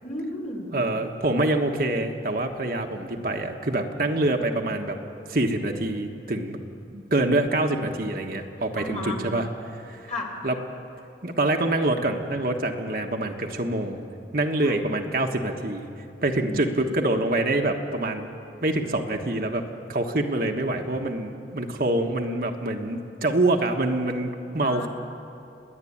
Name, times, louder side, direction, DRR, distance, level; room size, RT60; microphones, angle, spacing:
voice 1, 0.0-0.7 8.8-9.2 10.1-10.3 14.6-14.7 16.4-16.6 24.6-24.9, left 2 dB, 40° left, 0 dB, 3.3 m, -33 dB
voice 2, 0.7-5.0 5.3-6.6 6.9-10.1 10.4-10.6 11.2-14.1 14.3-15.9 16.2-18.3 18.6-19.6 19.9-24.9, right 2 dB, 50° right, 3 dB, 1.4 m, -25 dB
30.0 x 10.5 x 8.7 m, 2.7 s
head